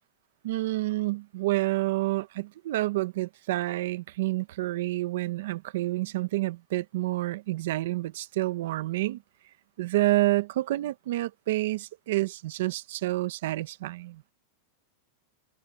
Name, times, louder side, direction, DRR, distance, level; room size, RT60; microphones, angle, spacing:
voice 1, 0.4-9.2 9.8-14.2, right 18 dB, 60° right, 1.0 m, -28 dB
supercardioid pair, 170°, 0 cm